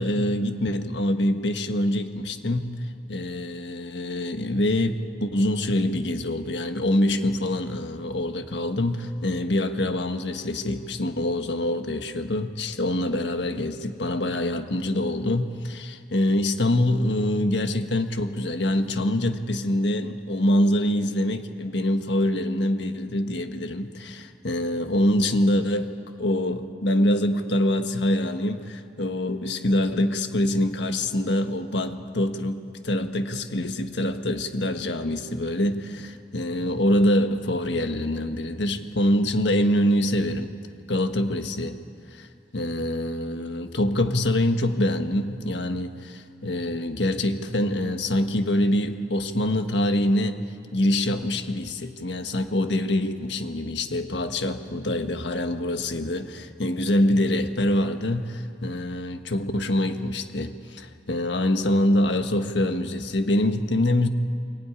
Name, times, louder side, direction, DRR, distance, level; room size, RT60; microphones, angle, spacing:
voice 1, 0.0-2.8 3.1-25.9 26.2-40.5 40.9-41.8 42.1-42.3 42.5-50.4 50.7-64.1, left 1 dB, 85° left, 7 dB, 1.5 m, -25 dB
22.5 x 18.0 x 9.8 m, 2.4 s
head